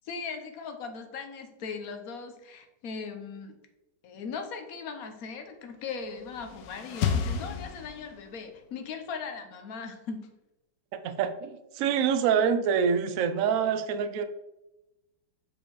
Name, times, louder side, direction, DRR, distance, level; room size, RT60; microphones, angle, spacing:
voice 1, 0.0-3.5 4.0-10.3, left 5 dB, 55° left, 6 dB, 1.2 m, -39 dB
sound 1, 6.0-8.4, left 7 dB, 75° left, 1.3 m, -32 dB
voice 2, 10.9-14.2, right 7 dB, 65° right, 9 dB, 0.8 m, -26 dB
5.8 x 5.1 x 4.7 m, 0.96 s
omnidirectional pair, 2.0 m